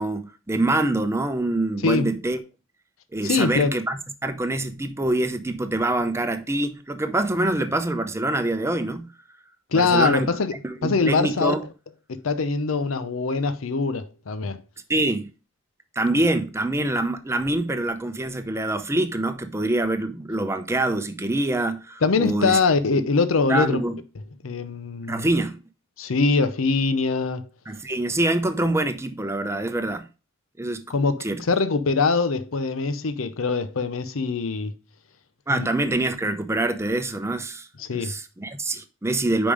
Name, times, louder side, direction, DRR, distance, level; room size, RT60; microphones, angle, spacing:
voice 1, 0.0-2.4 3.1-4.0 4.2-9.1 9.7-10.3 10.6-11.6 14.9-15.3 16.0-22.6 22.9-23.0 23.5-24.0 25.1-25.6 27.7-30.0 30.6-30.8 31.2-31.4 35.5-37.7 38.0-39.5, right 2 dB, 15° right, 0.7 m, -25 dB
voice 2, 3.2-3.8 9.7-10.5 10.8-11.5 12.1-14.6 22.0-23.8 24.4-25.3 26.0-27.5 30.9-34.7 35.5-35.7 37.8-38.2, left 4 dB, 90° left, 0.7 m, -23 dB
5.3 x 5.2 x 4.9 m
head